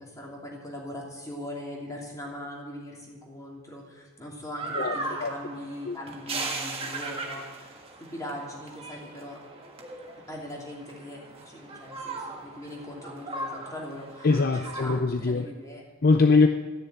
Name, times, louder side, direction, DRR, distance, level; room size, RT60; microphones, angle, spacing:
voice 1, 0.0-9.4 10.3-14.3 14.8-15.9, left 1 dB, 15° left, -2 dB, 2.8 m, -40 dB
sound 1, 4.6-15.0, right 3 dB, 30° right, 1.7 m, -38 dB
voice 2, 4.7-5.3 5.9-6.0 14.2-15.5 16.0-16.5, left 3 dB, 45° left, 6 dB, 0.6 m, -22 dB
13.0 x 6.8 x 8.9 m, 1.3 s
head